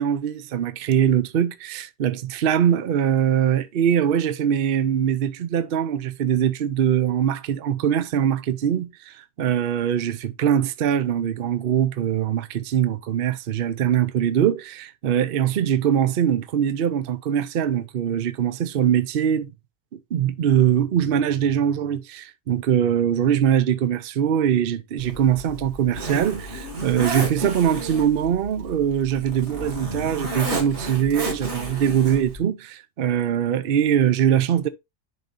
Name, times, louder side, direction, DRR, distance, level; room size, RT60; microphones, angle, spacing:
voice 1, 0.0-19.5 20.1-34.7, right 9 dB, 60° right, 0.6 m, -22 dB
Zipper (clothing), 25.0-32.4, right 2 dB, 40° right, 2.2 m, -32 dB
11.0 x 4.4 x 2.6 m
omnidirectional pair, 1.7 m